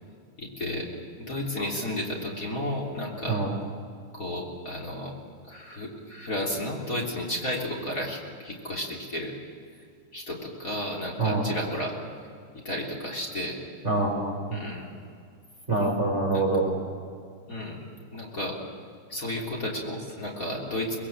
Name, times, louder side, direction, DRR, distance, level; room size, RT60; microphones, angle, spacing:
voice 1, 0.4-0.9 1.2-3.4 4.1-5.1 5.5-9.4 10.1-12.0 12.6-13.6 14.5-14.9 16.3-16.5 17.5-17.9 18.1-18.6 19.1-21.0, left 1 dB, 40° left, -2 dB, 3.9 m, -32 dB
voice 2, 11.2-11.5 13.8-14.6 15.7-16.7, right 2 dB, 30° right, 1 dB, 4.0 m, -25 dB
25.0 x 20.5 x 7.6 m, 2.3 s
omnidirectional pair, 2.4 m